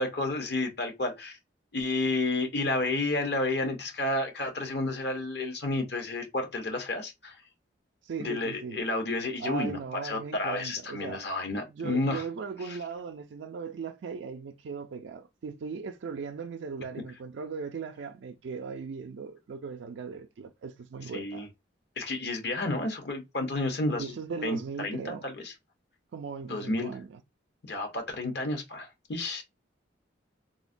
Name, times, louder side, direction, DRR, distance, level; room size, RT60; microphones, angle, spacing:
voice 1, 0.0-1.4 1.7-7.4 8.2-9.8 10.0-12.2 12.6-12.8 21.1-21.5 22.0-24.1 24.4-25.5 26.5-26.9 27.7-29.4, left 2 dB, 55° left, 0.8 m, -31 dB
voice 2, 8.0-8.9 9.4-11.3 11.7-21.5 24.0-25.2 26.1-27.2, right 5 dB, 75° right, 0.4 m, -38 dB
3.8 x 2.1 x 2.5 m
head